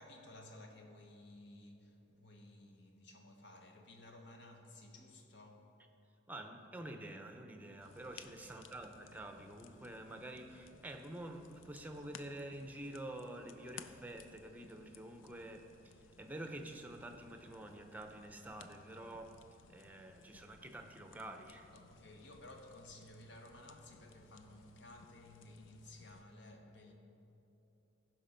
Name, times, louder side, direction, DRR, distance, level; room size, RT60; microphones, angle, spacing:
voice 1, 0.0-5.7 8.1-8.5 21.7-26.9, left 1 dB, 65° left, 3 dB, 1.2 m, -56 dB
voice 2, 6.3-19.4 19.7-21.7, right 1 dB, 10° right, 5 dB, 0.6 m, -48 dB
sound 1, 7.8-26.2, left 7 dB, 80° left, 0.5 m, -60 dB
14.5 x 6.0 x 5.2 m, 2.9 s
head